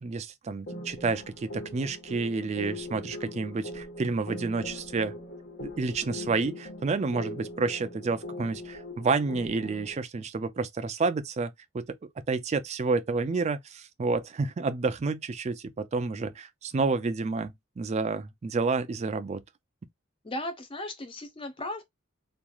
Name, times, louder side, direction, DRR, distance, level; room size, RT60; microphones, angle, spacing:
voice 1, 0.0-5.2 5.6-11.9 12.3-19.4, right 4 dB, 30° right, 0.3 m, -30 dB
sound 1, 0.7-9.9, left 1 dB, 50° left, 1.2 m, -41 dB
voice 2, 20.2-21.8, left 1 dB, 25° left, 0.6 m, -36 dB
3.0 x 2.4 x 2.2 m
head